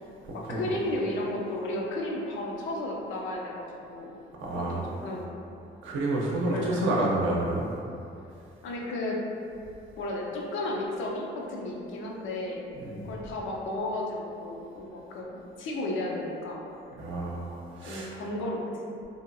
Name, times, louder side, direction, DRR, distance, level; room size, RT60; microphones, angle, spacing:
voice 1, 0.3-4.1 4.5-5.3 6.5-6.9 8.6-9.2 10.0-12.6 13.0-16.6 17.8-18.9, left 1 dB, 80° left, -2 dB, 0.5 m, -33 dB
voice 2, 4.4-4.9 5.8-7.7 12.7-13.1 17.0-18.1, right 2 dB, 75° right, -3 dB, 0.6 m, -29 dB
2.7 x 2.2 x 2.6 m, 2.6 s
cardioid pair, 90°, 20 cm